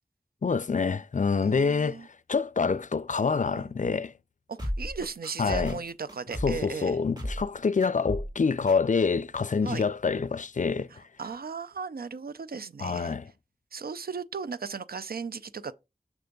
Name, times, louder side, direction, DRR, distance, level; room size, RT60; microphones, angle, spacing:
voice 1, 0.4-4.1 5.4-5.8 6.4-11.0 12.8-13.3, left 5 dB, 55° left, 0.4 m, -26 dB
voice 2, 1.4-2.1 3.5-3.7 4.5-7.0 9.6-9.8 10.9-13.2 13.7-15.7, right 5 dB, 85° right, 0.4 m, -36 dB
sound 1, 4.6-6.7 7.2-7.5 7.8-8.4 8.7-8.8, equal, 30° right, 2.4 m, -34 dB
6.1 x 3.4 x 5.1 m
wide cardioid pair, 45°, 15 cm